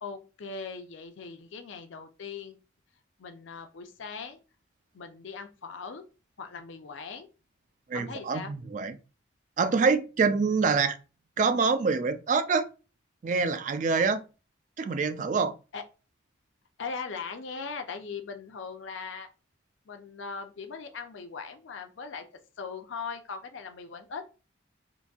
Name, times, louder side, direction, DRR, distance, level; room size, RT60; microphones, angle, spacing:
voice 1, 0.0-2.6 3.2-4.4 4.9-6.0 6.4-7.3 7.9-8.5 15.7-15.8 16.8-19.3 19.9-22.2 22.6-24.2, left 5 dB, 70° left, 0.5 m, -39 dB
voice 2, 7.9-9.0 9.6-11.0 11.4-12.7 13.2-14.2 14.8-15.5, right 4 dB, 40° right, 0.3 m, -25 dB
3.9 x 2.6 x 2.3 m
head